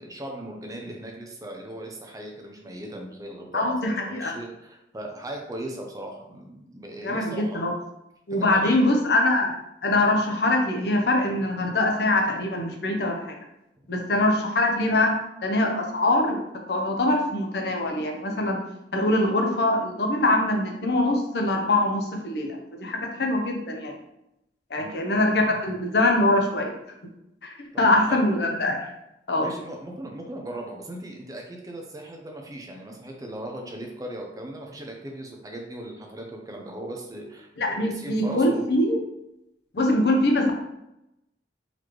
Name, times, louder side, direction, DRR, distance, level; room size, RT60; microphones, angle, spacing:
voice 1, 0.0-7.6 8.4-8.9 24.8-25.0 27.7-28.2 29.4-38.6, right 1 dB, 20° right, 1 dB, 0.5 m, -38 dB
voice 2, 3.5-4.3 7.0-7.7 8.3-9.5 9.8-13.3 13.9-15.1 15.4-16.4 16.7-18.6 18.9-23.9 24.7-26.8 27.4-28.9 29.3-29.5 37.6-39.0 39.7-40.5, left 1 dB, 60° left, 1 dB, 0.7 m, -23 dB
4.0 x 3.1 x 3.0 m, 0.87 s
head